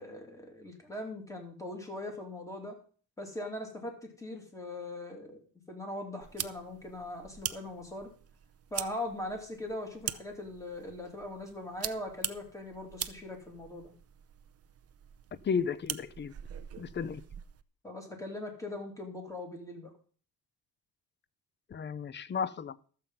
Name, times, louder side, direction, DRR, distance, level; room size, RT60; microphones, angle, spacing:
voice 1, 0.0-2.8 3.2-5.4 5.7-8.1 8.7-13.9 17.8-19.9, left 1 dB, 10° left, 2.6 m, -40 dB
sound 1, 6.2-17.6, right 9 dB, 40° right, 0.6 m, -43 dB
voice 2, 15.4-16.3 16.8-17.2 21.7-22.8, left 6 dB, 30° left, 0.5 m, -33 dB
13.0 x 7.7 x 5.5 m
wide cardioid pair, 165°, 37 cm